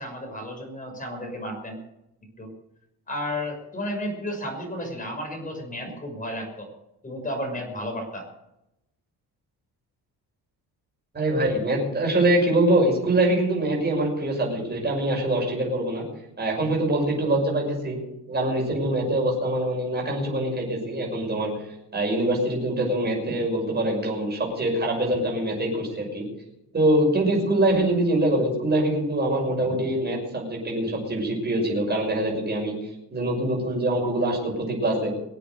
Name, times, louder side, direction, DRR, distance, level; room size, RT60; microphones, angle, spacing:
voice 1, 0.0-1.8 2.4-2.5 3.1-6.7 7.0-8.3, equal, 20° left, 2 dB, 5.9 m, -32 dB
voice 2, 11.1-16.0 16.4-18.0 18.3-21.5 21.9-26.3 26.7-32.7 33.1-35.1, right 1 dB, 25° right, -1 dB, 6.3 m, -24 dB
22.5 x 8.5 x 6.7 m, 0.86 s
cardioid pair, 140°, 39 cm